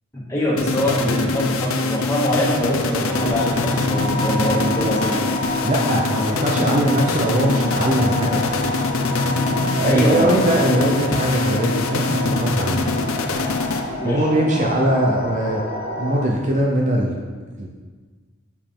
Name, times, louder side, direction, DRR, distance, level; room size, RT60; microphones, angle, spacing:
voice 1, 0.3-5.3 9.8-10.4 14.0-14.3, equal, 15° left, -8 dB, 2.3 m, -23 dB
sound 1, 0.6-14.2, left 3 dB, 70° left, 0.7 m, -24 dB
sound 2, 3.1-16.3, left 1 dB, 40° left, 1.3 m, -28 dB
voice 2, 5.6-8.5 9.5-12.9 14.0-15.6 16.0-17.2 17.6-17.7, right 1 dB, 35° right, -1 dB, 0.6 m, -21 dB
7.1 x 6.8 x 3.7 m, 1.5 s
head